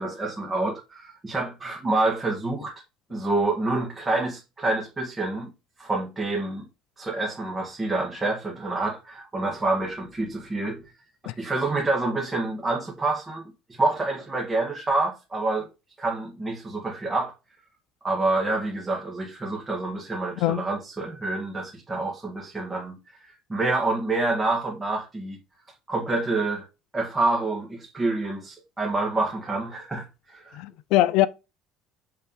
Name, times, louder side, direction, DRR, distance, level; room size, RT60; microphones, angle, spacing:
voice 1, 0.0-2.7 3.1-5.5 5.8-6.6 7.0-10.8 11.4-15.7 16.0-17.3 18.0-23.0 23.5-25.4 25.9-26.6 26.9-30.6, right 2 dB, 15° right, 1.7 m, -27 dB
voice 2, 30.6-31.3, left 14 dB, 75° left, 0.5 m, -22 dB
8.5 x 3.4 x 5.6 m
cardioid pair, 150°, 0 cm